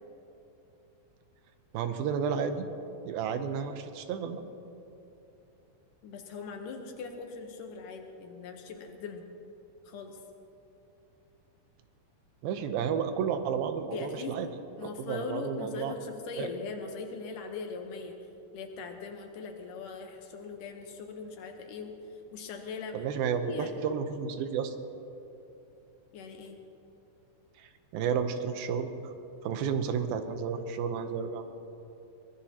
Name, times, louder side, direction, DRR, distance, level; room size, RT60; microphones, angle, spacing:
voice 1, 1.7-2.7 3.0-4.4 12.4-14.5 14.8-15.9 16.4-16.5 22.9-24.7 27.6-29.1 29.4-31.4, right 7 dB, 85° right, 8 dB, 2.7 m, -32 dB
voice 2, 6.0-9.2 9.9-10.2 13.9-14.4 14.8-18.2 18.5-21.9 22.3-23.8 26.1-26.6, left 4 dB, 70° left, 4 dB, 2.5 m, -40 dB
23.5 x 19.0 x 2.9 m, 2.8 s
omnidirectional pair, 4.1 m